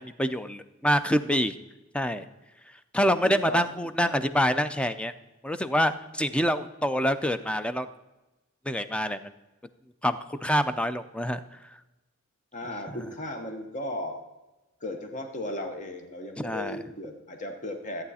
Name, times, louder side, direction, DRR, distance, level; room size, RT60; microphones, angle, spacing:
voice 1, 0.0-1.5 1.9-2.3 2.9-5.1 5.4-7.9 8.7-9.2 10.0-11.4 12.9-13.0 16.4-16.8, equal, 5° left, 11 dB, 0.4 m, -26 dB
voice 2, 3.2-3.7 4.0-4.2 12.5-14.2 14.8-18.0, left 1 dB, 35° left, 5 dB, 1.0 m, -36 dB
14.0 x 8.9 x 4.2 m, 1.1 s
head